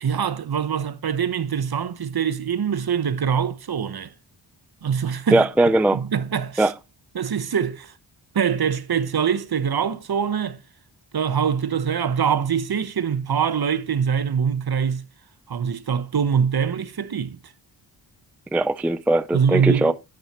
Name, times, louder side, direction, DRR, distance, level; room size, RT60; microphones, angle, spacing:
voice 1, 0.0-4.1 4.8-5.4 5.9-6.7 7.1-7.9 8.3-10.6 11.1-15.0 15.5-17.4 19.3-19.9, right 7 dB, 50° right, 0.9 m, -23 dB
voice 2, 5.3-6.0 6.6-6.7 18.5-19.9, right 1 dB, 5° right, 0.4 m, -19 dB
10.5 x 7.7 x 2.9 m
cardioid pair, 45°, 49 cm